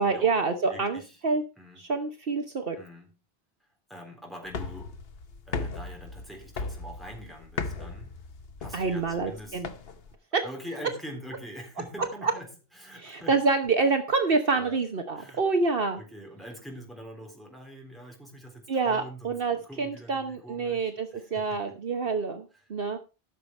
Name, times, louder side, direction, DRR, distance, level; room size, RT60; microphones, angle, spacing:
voice 1, 0.0-1.4 1.8-2.8 8.7-9.7 10.3-10.4 12.2-12.3 13.0-16.0 18.7-23.0, right 4 dB, 60° right, 6 dB, 1.2 m, -27 dB
voice 2, 0.7-1.2 1.6-1.8 2.8-3.1 3.6-5.0 5.5-8.2 8.6-9.6 10.4-13.3 14.5-14.8 15.2-15.4 15.9-21.6 22.5-22.6, equal, ahead, 0 dB, 3.9 m, -44 dB
sound 1, 4.5-10.1, left 4 dB, 65° left, 1.2 m, -37 dB
14.0 x 6.9 x 4.4 m, 0.30 s
omnidirectional pair, 1.1 m